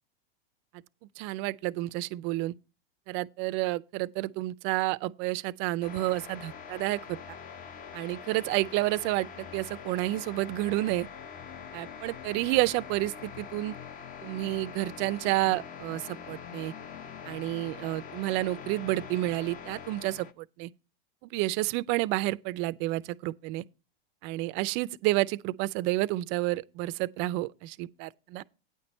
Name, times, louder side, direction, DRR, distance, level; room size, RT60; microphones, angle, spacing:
voice 1, 1.2-2.5 3.1-7.4 7.9-11.1 11.7-13.7 14.2-16.7 17.3-20.7 21.2-23.6 24.2-28.4, right 18 dB, 40° right, 0.5 m, -30 dB
sound 1, 5.8-20.3, left 7 dB, 25° left, 0.7 m, -44 dB
9.4 x 6.0 x 5.4 m
hypercardioid pair, 120°, 31 cm